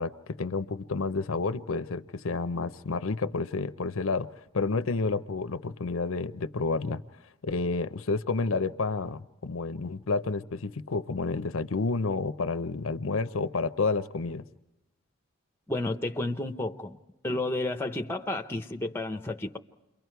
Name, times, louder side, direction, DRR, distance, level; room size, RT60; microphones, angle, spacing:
voice 1, 0.0-4.3 4.5-7.0 7.4-14.4, left 3 dB, 85° left, 0.7 m, -30 dB
voice 2, 15.7-17.0 17.2-19.6, left 2 dB, 10° left, 0.8 m, -31 dB
29.0 x 23.0 x 4.7 m
head